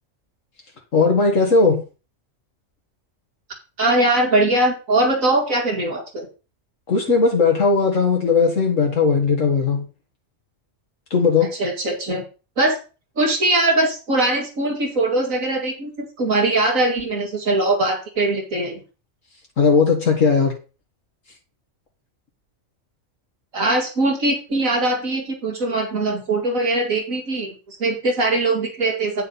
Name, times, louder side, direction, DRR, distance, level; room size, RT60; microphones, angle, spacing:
voice 1, 0.9-1.8 6.9-9.9 11.1-11.5 19.6-20.5, left 4 dB, 70° left, 1 dB, 2.0 m, -17 dB
voice 2, 3.8-6.3 11.6-12.2 12.6-12.8 13.2-18.8 23.5-29.3, right 2 dB, 85° right, 1 dB, 2.9 m, -21 dB
9.6 x 6.6 x 4.2 m, 0.32 s
omnidirectional pair, 1.4 m